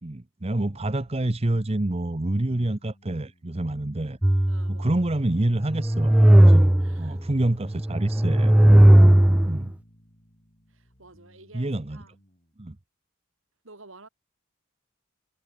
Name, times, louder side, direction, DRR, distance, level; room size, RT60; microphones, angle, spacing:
voice 1, 0.0-4.2 4.7-6.1 6.4-6.7 7.0-8.6 9.5-9.7 11.5-12.0 12.6-12.8, right 1 dB, 30° right, 0.9 m, -27 dB
sound 1, 0.7-12.5, equal, 35° left, 7.6 m, -58 dB
sound 2, 4.2-5.1 5.6-7.2 7.7-9.7, right 1 dB, 5° right, 0.3 m, -17 dB
voice 2, 4.5-5.1 6.8-7.2 10.7-12.2 13.6-14.1, right 3 dB, 65° right, 3.6 m, -51 dB
head